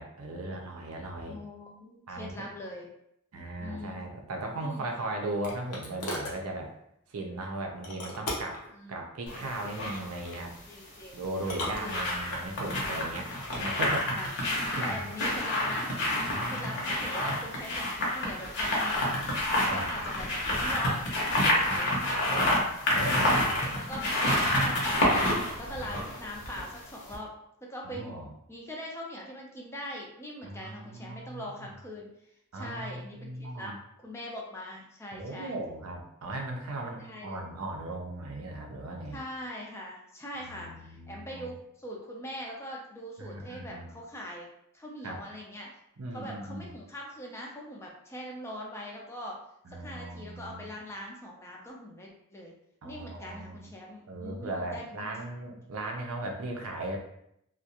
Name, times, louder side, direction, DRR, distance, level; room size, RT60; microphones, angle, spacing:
voice 1, 0.0-1.4 2.1-2.4 3.3-6.7 7.1-8.6 8.9-10.5 11.1-13.3 13.6-14.2 14.8-15.0 16.3-16.8 19.6-20.0 21.6-21.8 22.9-23.5 25.6-26.0 27.8-28.3 30.4-31.7 32.5-33.8 35.1-39.2 40.4-41.5 43.2-43.9 45.0-45.2 46.0-46.7 49.7-50.7 52.8-53.7 54.1-57.0, right 2 dB, 70° right, 2 dB, 0.5 m, -37 dB
voice 2, 1.3-2.8 3.6-4.0 4.6-4.9 8.7-8.9 10.7-11.2 11.8-12.0 14.1-14.3 14.8-16.0 16.4-22.5 22.9-27.3 27.6-32.1 32.5-33.8 34.0-35.6 37.0-37.4 39.1-44.5 44.7-45.7 46.1-49.4 49.7-52.5 52.8-55.1, equal, 10° left, -2 dB, 0.4 m, -41 dB
sound 1, 4.6-6.4 7.8-8.7 10.0-10.5 11.4-12.4 13.2-14.0, left 1 dB, 90° left, 0.7 m, -38 dB
sound 2, 9.3-10.0 11.2-26.8 27.1-27.2, left 1 dB, 55° left, 0.8 m, -28 dB
2.4 x 2.1 x 2.8 m, 0.75 s
head